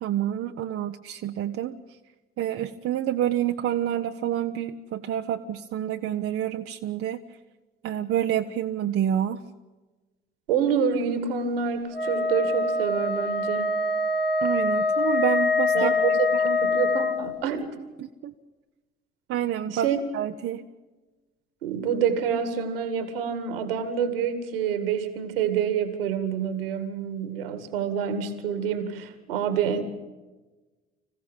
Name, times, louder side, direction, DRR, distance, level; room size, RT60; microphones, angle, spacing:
voice 1, 0.0-1.8 2.4-7.2 7.8-9.4 14.4-16.6 18.0-18.3 19.3-20.6, right 11 dB, 50° right, 6 dB, 0.9 m, -28 dB
voice 2, 10.5-13.8 15.7-16.3 16.6-17.7 19.7-20.0 21.6-29.8, right 7 dB, 75° right, 11 dB, 2.1 m, -27 dB
Wind instrument woodwind instrument, 11.9-17.2, left 3 dB, 85° left, 1.5 m, -24 dB
25.5 x 16.0 x 9.0 m, 1.2 s
figure-of-eight pair, 45°, 29 cm